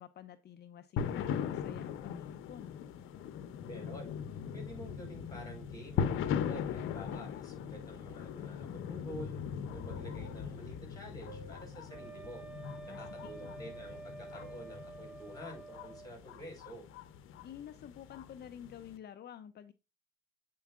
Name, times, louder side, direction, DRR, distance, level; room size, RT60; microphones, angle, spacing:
voice 1, 0.0-2.8 12.8-13.3 17.4-19.7, left 9 dB, 55° left, 10 dB, 0.6 m, -50 dB
sound 1, 1.0-19.0, left 7 dB, 85° left, 0.8 m, -40 dB
voice 2, 3.6-4.1 4.5-9.4 9.7-12.4 12.8-16.8, equal, 20° left, 1 dB, 4.9 m, -49 dB
sound 2, 8.6-14.0 14.4-14.5, right 5 dB, 75° right, 1.3 m, -59 dB
Wind instrument woodwind instrument, 11.9-16.1, right 4 dB, 5° right, 2.5 m, -49 dB
8.4 x 4.6 x 3.6 m, 0.27 s
cardioid pair, 90°, 20 cm